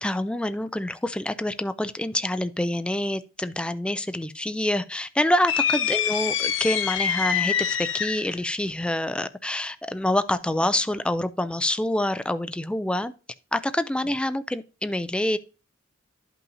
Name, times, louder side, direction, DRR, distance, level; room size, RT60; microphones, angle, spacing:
voice 1, 0.0-13.1 13.5-15.4, left 1 dB, 5° left, 0.3 m, -26 dB
sound 1, 5.5-8.4, left 8 dB, 80° left, 0.7 m, -25 dB
12.0 x 5.5 x 2.7 m
head